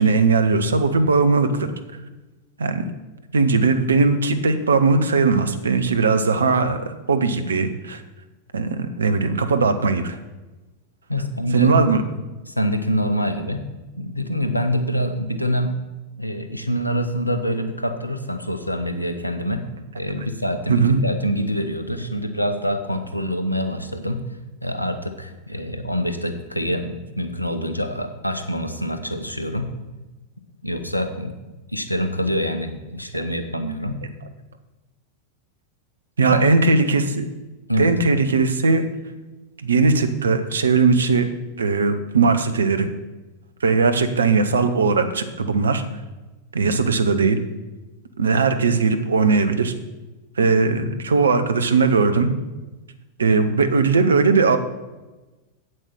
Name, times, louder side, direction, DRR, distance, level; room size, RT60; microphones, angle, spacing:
voice 1, 0.0-1.7 2.6-2.8 3.3-8.0 8.5-10.2 11.5-12.0 20.7-21.0 36.2-37.2 37.8-38.8 39.6-41.3 41.6-42.9 43.6-45.8 46.5-47.4 48.2-49.7 50.4-52.3 53.2-54.6, right 4 dB, 70° right, 9 dB, 0.9 m, -19 dB
voice 2, 11.1-12.0 12.5-13.7 14.0-15.7 16.2-19.7 20.0-24.2 24.6-29.7 30.6-31.4 31.7-34.0 36.3-36.4 37.7-37.9, equal, 90° left, 8 dB, 0.9 m, -25 dB
8.1 x 7.6 x 6.2 m, 1.1 s
figure-of-eight pair, 90°, 0 cm